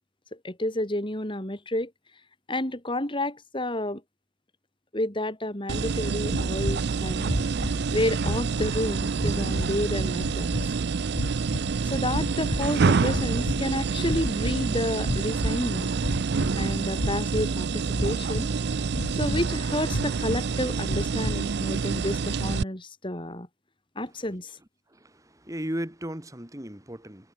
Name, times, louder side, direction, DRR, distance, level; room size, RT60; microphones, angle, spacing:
voice 1, 0.4-1.9 2.5-4.0 4.9-7.3 7.9-10.5 11.8-15.9 16.6-18.5 19.1-23.5 24.0-24.5, left 1 dB, 25° left, 4.0 m, -30 dB
sound 1, 5.7-22.6, right 5 dB, 60° right, 0.5 m, -27 dB
sound 2, 6.3-6.9 7.2-7.8 8.2-8.8 9.2-9.8 10.1-10.7 11.1-11.8 12.1-12.7 13.0-13.7 14.0-14.6 15.0-15.6 16.0-16.6 17.0-17.5 17.9-18.6 18.9-19.5 19.9-20.4 20.9-21.4, left 1 dB, 85° left, 3.9 m, -32 dB
voice 2, 24.9-27.3, equal, 20° right, 3.2 m, -36 dB
head